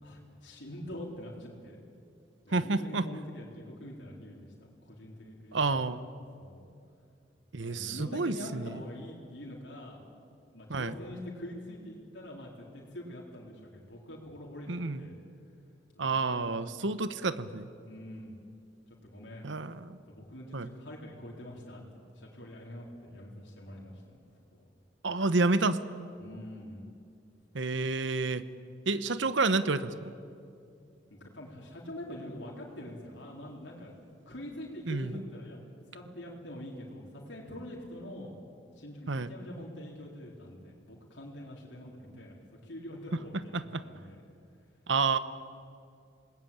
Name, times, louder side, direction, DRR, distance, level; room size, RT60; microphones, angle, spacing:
voice 1, 0.0-1.8 2.4-5.8 6.4-6.6 7.6-10.0 10.5-15.2 15.9-16.5 17.9-18.4 19.0-19.5 20.1-21.8 22.1-24.0 24.5-24.6 26.2-26.9 31.1-33.9 34.3-35.6 35.9-38.3 38.8-42.4 42.6-44.3, left 1 dB, 75° left, -3 dB, 4.1 m, -44 dB
voice 2, 2.5-3.1 5.5-6.0 7.5-8.8 10.7-10.9 14.7-15.1 16.0-17.7 19.4-20.0 20.5-20.7 25.0-25.8 27.5-28.4 28.9-30.1 34.9-35.2 39.1-39.3 43.5-43.8 44.9-45.2, right 3 dB, 90° right, 13 dB, 1.0 m, -29 dB
28.0 x 20.0 x 8.9 m, 2.4 s
head